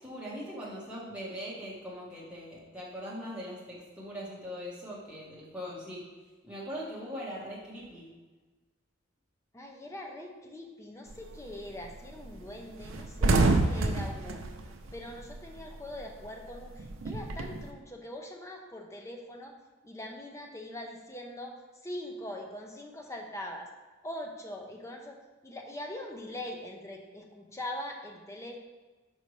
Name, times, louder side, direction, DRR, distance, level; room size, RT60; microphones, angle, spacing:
voice 1, 0.0-6.0 6.4-8.1, equal, 5° right, -7 dB, 1.3 m, -41 dB
voice 2, 9.5-14.4 14.9-19.5 19.8-21.6 21.8-23.7 24.0-25.2 25.4-28.6, left 1 dB, 15° left, 1 dB, 0.6 m, -42 dB
sound 1, 11.1-11.4 11.8-12.0 12.2-12.4 12.7-15.7 16.0-17.6, right 2 dB, 85° right, 0.6 m, -27 dB
5.5 x 5.4 x 3.2 m, 1.3 s
head